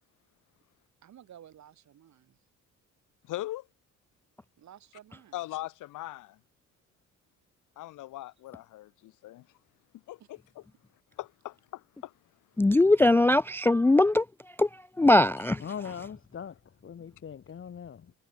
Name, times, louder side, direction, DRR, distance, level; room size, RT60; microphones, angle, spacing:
voice 1, 1.0-2.4 4.6-5.4 8.2-8.3 10.2-10.3, right 10 dB, 65° right, 4.9 m, -53 dB
voice 2, 3.3-3.7 5.3-6.4 7.8-9.5 10.1-10.4 11.2-12.1, left 16 dB, 85° left, 1.9 m, -40 dB
voice 3, 12.6-14.2 14.6-14.7 15.0-15.6, left 2 dB, 10° left, 0.3 m, -21 dB
voice 4, 15.6-18.1, left 7 dB, 45° left, 1.4 m, -41 dB
cardioid pair, 90°, 30 cm